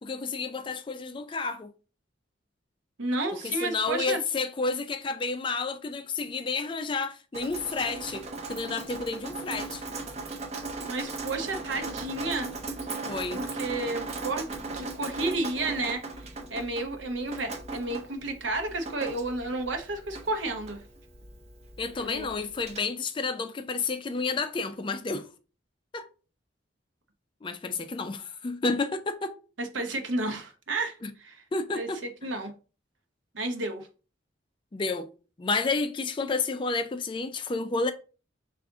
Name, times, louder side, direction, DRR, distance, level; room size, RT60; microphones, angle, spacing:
voice 1, 0.1-1.7 3.4-9.8 13.1-13.4 21.8-25.3 25.9-26.1 27.4-29.3 31.0-31.1 31.5-32.0 34.7-35.1 35.4-37.9, left 4 dB, 25° left, 0.3 m, -30 dB
voice 2, 3.0-4.2 10.9-12.5 13.3-14.5 14.7-20.8 22.0-22.3 29.6-31.4 31.7-32.5 33.3-33.9, right 2 dB, 75° right, 0.8 m, -32 dB
Drip, 7.3-22.8, right 3 dB, 35° right, 0.6 m, -38 dB
4.8 x 2.5 x 3.5 m
head